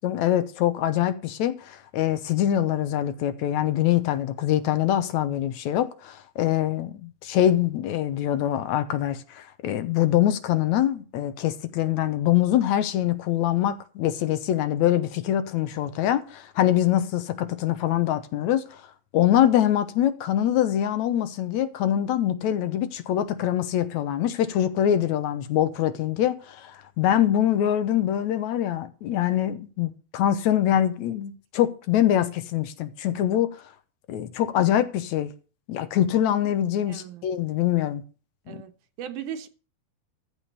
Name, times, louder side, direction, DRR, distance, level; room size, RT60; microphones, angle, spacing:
voice 1, 0.0-33.7 34.1-35.3 35.7-38.0 38.5-38.6, left 11 dB, 70° left, 2.1 m, -24 dB
voice 2, 36.9-37.2 38.5-38.7 39.0-39.5, right 9 dB, 80° right, 2.6 m, -36 dB
14.0 x 5.0 x 8.1 m
omnidirectional pair, 3.6 m